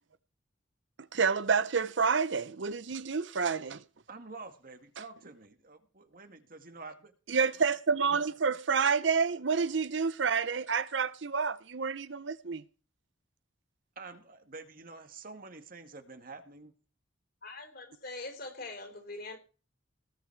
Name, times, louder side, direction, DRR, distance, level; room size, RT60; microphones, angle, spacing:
voice 1, 1.0-3.8 7.3-12.6, right 5 dB, 65° right, 0.7 m, -29 dB
voice 2, 4.1-7.1 14.0-16.7, right 3 dB, 45° right, 1.9 m, -48 dB
voice 3, 17.4-19.4, left 2 dB, 50° left, 4.2 m, -43 dB
19.0 x 8.3 x 4.6 m
head